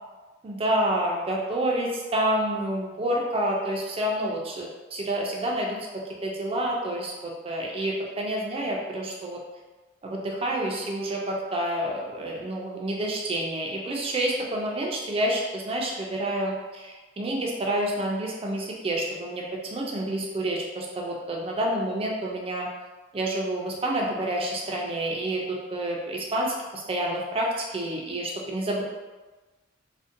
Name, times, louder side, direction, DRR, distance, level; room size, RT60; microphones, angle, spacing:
voice 1, 0.4-9.4 10.0-19.4 19.7-22.7 23.1-28.8, right 1 dB, 30° right, -2 dB, 0.4 m, -28 dB
2.5 x 2.1 x 2.5 m, 1.2 s
head